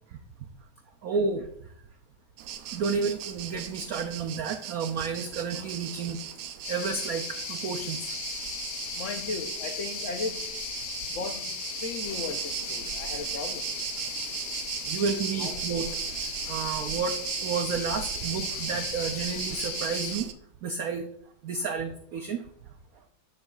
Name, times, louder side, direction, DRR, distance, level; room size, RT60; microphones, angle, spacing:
voice 1, 1.0-1.7 2.7-6.2 6.7-8.2 14.9-20.3 20.6-21.1 21.4-22.5, right 5 dB, 85° right, 5 dB, 0.7 m, -31 dB
sound 1, 2.4-20.3, right 10 dB, 70° right, 1.1 m, -37 dB
sound 2, 6.6-20.2, left 6 dB, 60° left, 1.4 m, -37 dB
voice 2, 8.9-10.5 11.1-13.7 15.4-15.6, left 4 dB, 90° left, 5 dB, 0.6 m, -36 dB
13.0 x 4.7 x 2.3 m, 0.68 s
omnidirectional pair, 2.2 m